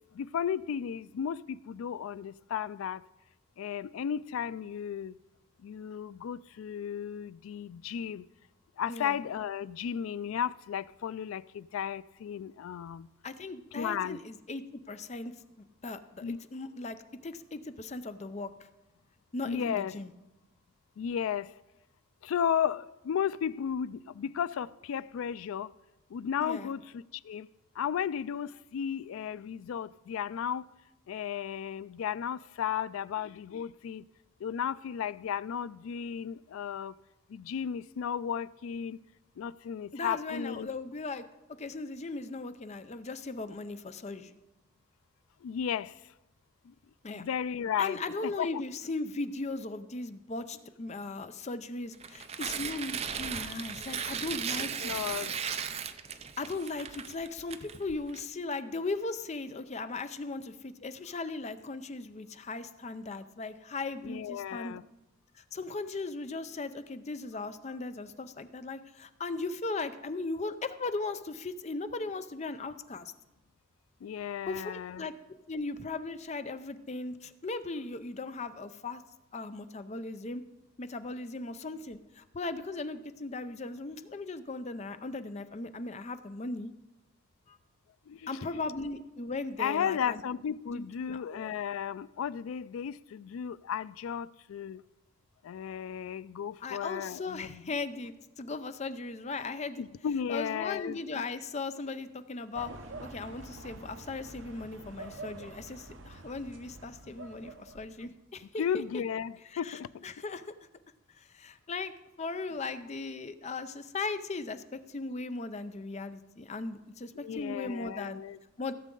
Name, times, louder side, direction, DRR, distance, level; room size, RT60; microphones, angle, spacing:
voice 1, 0.1-3.0 3.6-5.2 5.6-8.3 8.8-13.1 13.8-14.2 16.2-16.4 19.4-20.0 21.0-21.5 22.2-25.7 26.1-27.5 27.8-30.7 31.1-34.1 34.4-36.9 37.3-39.0 39.4-40.7 45.4-46.1 46.6-46.7 47.1-48.6 54.8-55.3 64.0-64.8 74.0-75.1 88.1-88.6 89.6-94.8 95.4-97.6 99.8-101.2 108.6-110.0 117.2-118.4, left 8 dB, 85° left, 0.3 m, -34 dB
voice 2, 8.9-9.2 13.2-15.3 15.6-17.0 17.2-18.7 19.3-20.1 26.4-26.7 39.9-41.2 41.6-44.3 47.0-47.2 47.8-54.9 56.4-64.8 65.4-73.1 74.5-75.1 75.5-79.0 79.3-80.4 80.8-86.7 87.5-87.6 88.3-90.2 90.7-91.5 96.6-99.8 100.3-102.7 103.0-108.6 109.5-110.4 111.2-111.9 112.2-118.2 118.6-118.7, left 3 dB, 35° left, 0.5 m, -38 dB
Tearing, 51.9-58.2, right 7 dB, 30° right, 0.5 m, -36 dB
sound 1, 102.5-108.1, right 2 dB, 65° right, 0.8 m, -47 dB
16.0 x 7.3 x 3.8 m
head